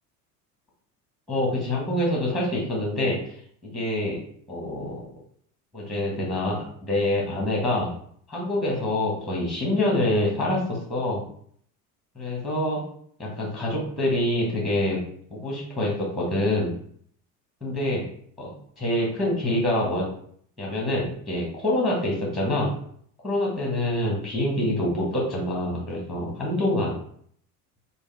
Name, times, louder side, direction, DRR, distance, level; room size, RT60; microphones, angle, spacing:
voice 1, 1.3-3.2 3.6-4.2 4.5-5.0 5.7-7.9 8.3-11.2 12.1-12.8 13.2-15.0 15.3-16.7 17.6-18.1 18.4-20.1 20.6-22.7 23.2-27.0, left 1 dB, ahead, -3 dB, 1.2 m, -26 dB
3.5 x 2.2 x 3.3 m, 0.62 s
figure-of-eight pair, 70°, 48 cm